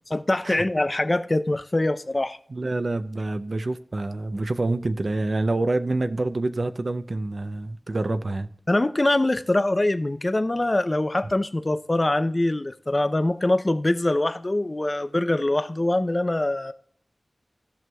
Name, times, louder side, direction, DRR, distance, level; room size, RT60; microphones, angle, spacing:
voice 1, 0.1-2.4 8.7-16.7, left 1 dB, 30° left, 0.5 m, -23 dB
voice 2, 2.5-8.5, right 2 dB, 55° right, 0.5 m, -27 dB
16.5 x 6.1 x 2.3 m
wide cardioid pair, 70°, 0 cm